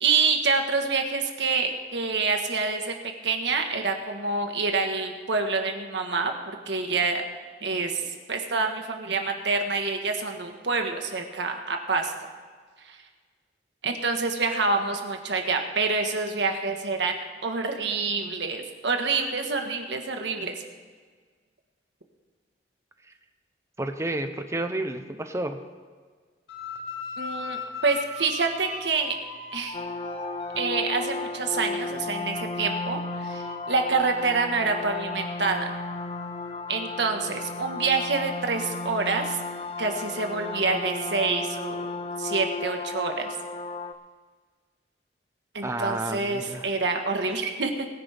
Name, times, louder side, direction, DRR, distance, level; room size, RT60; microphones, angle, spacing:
voice 1, 0.0-2.9 3.2-7.2 7.6-12.1 12.9-13.0 13.8-20.5 27.2-29.2 29.5-29.8 30.5-35.7 36.7-39.4 39.8-41.9 42.2-43.3 45.5-47.9, right 4 dB, 80° right, 4 dB, 1.6 m, -27 dB
voice 2, 23.8-25.6 45.6-46.7, right 1 dB, 15° right, 7 dB, 0.8 m, -30 dB
sound 1, 26.5-31.7 32.2-37.5, left 2 dB, 70° left, 2.8 m, -41 dB
sound 2, 29.7-43.9, left 3 dB, 35° left, 0.5 m, -34 dB
21.0 x 10.0 x 3.6 m, 1.5 s
head